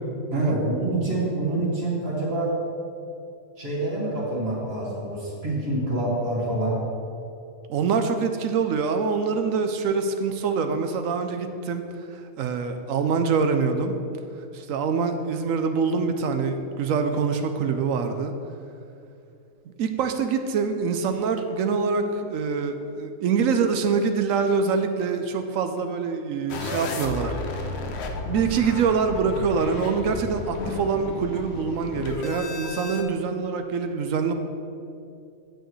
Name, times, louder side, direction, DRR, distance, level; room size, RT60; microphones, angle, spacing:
voice 1, 0.3-2.5 3.6-6.8, right 2 dB, 45° right, -6 dB, 2.1 m, -26 dB
voice 2, 7.7-11.8 12.1-13.9 14.5-18.3 19.8-27.7 28.2-34.3, right 5 dB, 70° right, 7 dB, 1.0 m, -25 dB
sound 1, 26.5-33.0, left 3 dB, 55° left, 0.9 m, -33 dB
9.1 x 8.8 x 3.1 m, 2.6 s
omnidirectional pair, 1.5 m